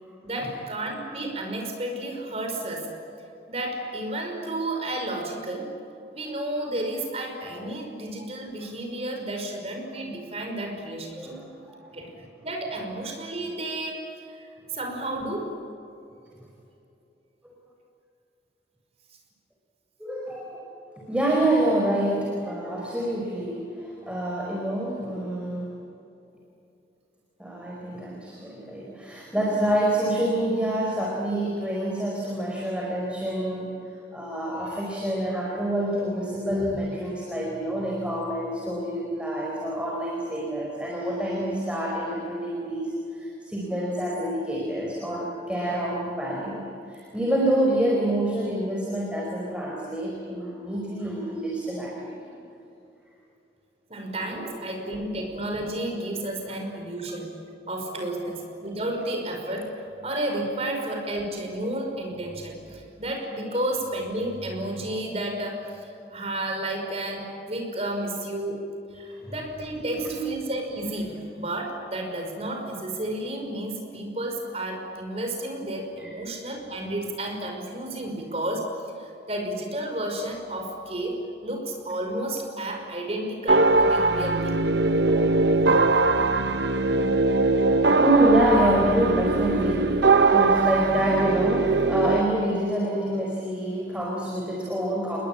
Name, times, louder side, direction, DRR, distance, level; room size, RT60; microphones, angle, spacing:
voice 1, 0.2-2.9 3.5-5.7 6.1-11.3 11.9-12.2 12.4-14.5 14.7-15.6 53.9-57.4 57.7-68.6 68.9-78.7 79.0-84.6, right 1 dB, 35° right, 3 dB, 5.6 m, -32 dB
voice 2, 11.2-11.8 17.4-17.5 20.0-20.6 21.1-25.7 27.4-33.7 34.1-52.1 54.3-54.5 58.1-58.2 60.6-60.7 63.4-63.5 69.2-69.3 69.7-70.2 76.0-76.2 85.1-85.4 88.0-95.2, right 1 dB, 5° right, -2 dB, 4.7 m, -27 dB
sound 1, 83.5-92.2, right 3 dB, 75° right, 1.1 m, -21 dB
29.5 x 21.0 x 8.8 m, 2.7 s
head